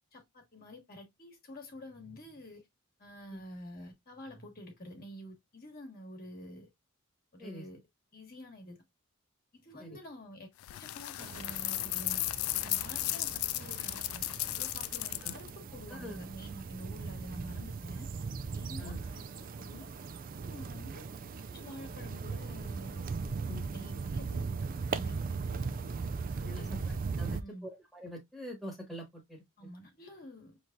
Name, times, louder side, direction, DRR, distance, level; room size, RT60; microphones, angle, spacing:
voice 1, 0.1-2.6 3.0-6.7 7.3-7.8 8.1-8.8 9.5-12.2 12.6-18.1 18.5-19.9 20.4-21.0 21.5-24.4 24.9-25.6 26.4-27.7 29.6-30.6, equal, 45° left, 1.2 m, -49 dB
sound 1, 10.6-15.5, left 17 dB, 85° left, 0.3 m, -35 dB
sound 2, 11.2-27.4, right 4 dB, 40° right, 0.4 m, -39 dB
voice 2, 27.2-29.7, left 1 dB, ahead, 1.2 m, -45 dB
5.5 x 3.1 x 2.3 m
head